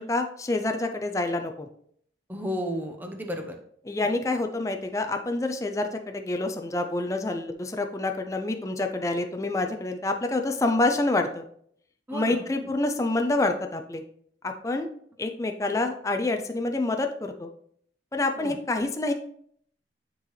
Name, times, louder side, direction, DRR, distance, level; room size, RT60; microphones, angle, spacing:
voice 1, 0.0-1.7 3.8-11.4 12.1-14.0 14.4-14.9 15.2-17.5 18.1-19.1, left 2 dB, 15° left, 5 dB, 0.4 m, -27 dB
voice 2, 2.3-3.6 12.1-12.7 18.4-18.6, equal, 10° right, 3 dB, 0.8 m, -33 dB
9.9 x 3.8 x 3.1 m, 0.64 s
head